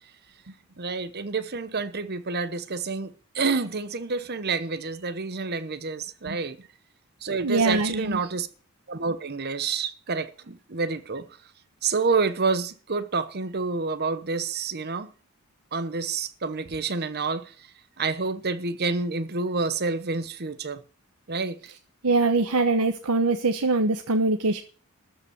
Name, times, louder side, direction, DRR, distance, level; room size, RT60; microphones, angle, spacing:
voice 1, 0.8-6.6 7.2-8.5 8.9-11.3 11.8-15.1 15.7-17.7 18.0-20.8 21.3-21.7, right 4 dB, 45° right, 1.0 m, -28 dB
voice 2, 7.4-8.2 22.0-24.6, right 3 dB, 85° right, 1.1 m, -23 dB
13.5 x 5.5 x 8.5 m
head